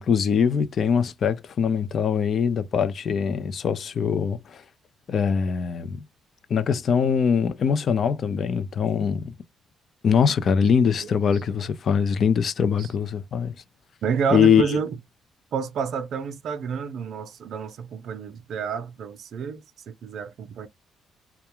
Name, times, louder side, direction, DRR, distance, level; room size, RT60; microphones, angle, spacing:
voice 1, 0.0-4.6 5.1-6.0 6.5-9.3 10.0-13.5 14.3-14.8, left 7 dB, 55° left, 0.5 m, -22 dB
voice 2, 14.0-14.9 15.5-20.7, right 6 dB, 70° right, 0.5 m, -29 dB
2.3 x 2.2 x 2.9 m
cardioid pair, 90°, 0 cm